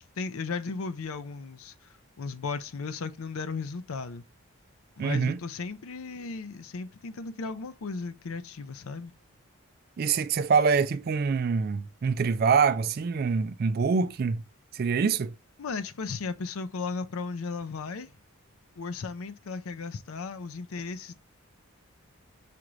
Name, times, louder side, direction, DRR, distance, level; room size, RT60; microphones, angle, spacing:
voice 1, 0.0-4.2 5.0-9.1 15.6-18.1 18.8-21.1, left 4 dB, 70° left, 0.5 m, -36 dB
voice 2, 5.0-5.4 10.0-14.4 14.7-15.3, right 5 dB, 45° right, 0.3 m, -25 dB
5.8 x 2.5 x 3.0 m
head